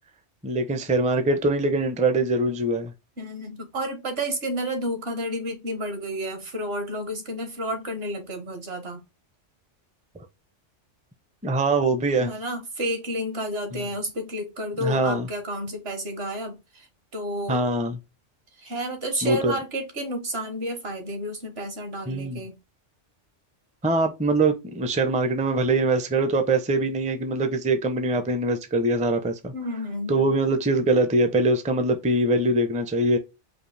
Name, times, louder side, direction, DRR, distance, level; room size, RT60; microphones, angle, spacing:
voice 1, 0.4-2.9 11.4-12.3 13.7-13.8 14.8-15.3 17.5-18.0 19.2-19.5 22.1-22.4 23.8-29.5 30.1-33.2, right 2 dB, 10° right, 0.4 m, -23 dB
voice 2, 3.2-9.0 12.2-16.9 17.1-17.6 18.6-22.6 29.5-30.3, equal, 60° right, 1.4 m, -31 dB
5.1 x 2.4 x 3.3 m
omnidirectional pair, 1.2 m